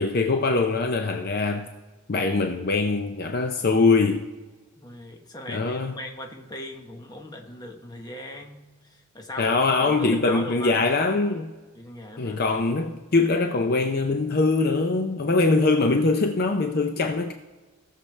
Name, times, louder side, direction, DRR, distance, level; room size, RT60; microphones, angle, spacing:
voice 1, 0.0-1.7 2.1-4.2 5.5-6.0 9.4-11.5 12.2-17.3, left 3 dB, 45° left, 4 dB, 0.5 m, -22 dB
voice 2, 4.8-10.8 11.7-12.4, left 1 dB, 20° left, 2 dB, 1.0 m, -39 dB
17.0 x 6.7 x 3.2 m, 1.3 s
head